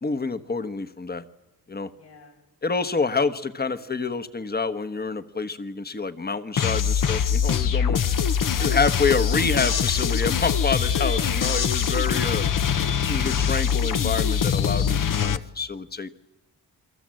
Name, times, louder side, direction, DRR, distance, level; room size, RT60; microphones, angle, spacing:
voice 1, 0.0-1.2 1.7-1.9 2.6-8.0 8.6-12.5 13.1-16.1, left 4 dB, 25° left, 11 dB, 1.3 m, -27 dB
voice 2, 1.8-2.4 3.0-3.1 3.7-3.9 7.8-8.2 8.6-8.9 10.7-11.8 12.4-13.1, left 4 dB, 85° left, 0 dB, 7.5 m, -45 dB
sound 1, 6.6-15.4, left 7 dB, 50° left, 1.0 m, -23 dB
28.0 x 23.0 x 7.7 m, 0.99 s
wide cardioid pair, 120°, 40 cm